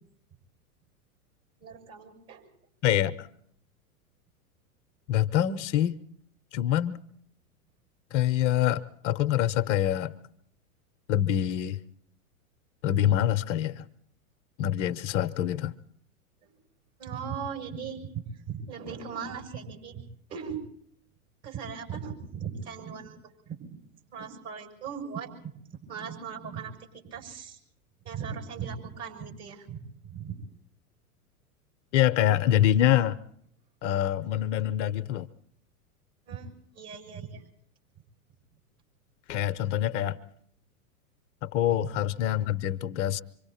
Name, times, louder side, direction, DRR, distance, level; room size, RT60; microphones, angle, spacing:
voice 1, 1.6-2.4 16.4-16.6 17.0-18.1 18.5-20.0 20.3-20.6 21.4-23.2 23.5-23.8 24.1-25.3 25.9-26.7 27.1-27.6 28.0-29.8 30.0-30.3 36.3-37.4 41.8-41.9, right 6 dB, 35° right, 2 dB, 7.0 m, -38 dB
voice 2, 2.8-3.3 5.1-6.0 6.5-7.0 8.1-10.1 11.1-11.8 12.8-13.9 14.6-15.7 31.9-33.2 33.8-35.3 39.3-40.2 41.4-43.2, left 11 dB, 50° left, 13 dB, 0.9 m, -25 dB
26.5 x 25.0 x 4.3 m, 0.65 s
hypercardioid pair, 105°, 44 cm